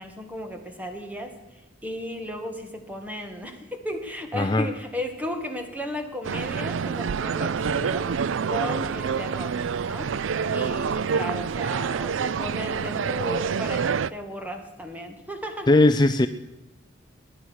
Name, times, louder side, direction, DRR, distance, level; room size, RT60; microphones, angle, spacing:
voice 1, 0.0-1.3 1.8-8.1 8.5-10.1 10.5-15.8, left 1 dB, 10° right, 5 dB, 2.0 m, -35 dB
voice 2, 4.4-4.7 15.7-16.3, left 2 dB, 25° left, 9 dB, 0.5 m, -18 dB
sound 1, 6.2-14.1, right 6 dB, 80° right, 0.4 m, -27 dB
20.5 x 10.0 x 6.4 m, 1.0 s
head